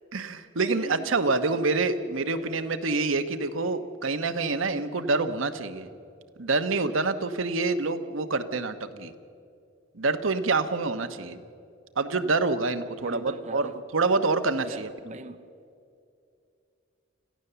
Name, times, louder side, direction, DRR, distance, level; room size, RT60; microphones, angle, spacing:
voice 1, 0.1-5.9 6.4-9.1 9.9-11.4 12.0-14.9, right 3 dB, 85° right, 1.1 m, -27 dB
voice 2, 0.6-1.1 1.5-1.6 2.4-2.7 13.0-13.8 14.6-15.4, right 3 dB, 35° right, 0.5 m, -41 dB
26.0 x 15.5 x 6.9 m
head